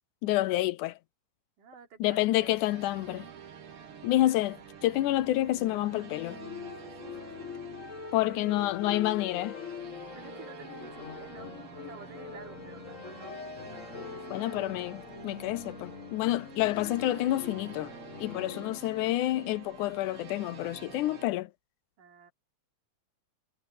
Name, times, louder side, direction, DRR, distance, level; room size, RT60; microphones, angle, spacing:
voice 1, 0.2-1.0 2.0-3.3 4.0-6.4 8.1-9.5 14.3-17.9 18.2-21.5, left 16 dB, 80° left, 2.0 m, -28 dB
voice 2, 1.6-2.5 6.8-7.3 8.3-8.5 10.1-11.5 11.9-13.4 14.1-14.4 22.0-22.3, right 5 dB, 75° right, 5.1 m, -51 dB
sound 1, 2.4-21.3, right 7 dB, 50° right, 2.1 m, -49 dB
sound 2, 5.5-18.8, left 5 dB, 50° left, 0.9 m, -43 dB
omnidirectional pair, 3.8 m